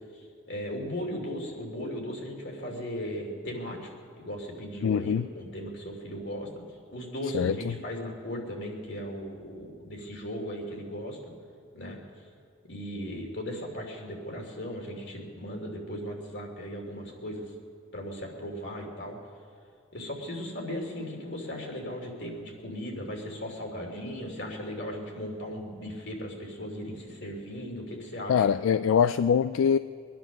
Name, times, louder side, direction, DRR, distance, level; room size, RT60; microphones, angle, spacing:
voice 1, 0.1-3.9 4.2-6.5 6.9-11.2 11.7-12.0 12.7-17.5 17.9-19.2 19.9-28.5, equal, 60° left, 1 dB, 2.9 m, -37 dB
voice 2, 4.8-5.3 7.3-7.7 28.3-29.8, left 7 dB, 80° left, 13 dB, 0.3 m, -23 dB
23.0 x 10.5 x 6.1 m, 2.2 s
head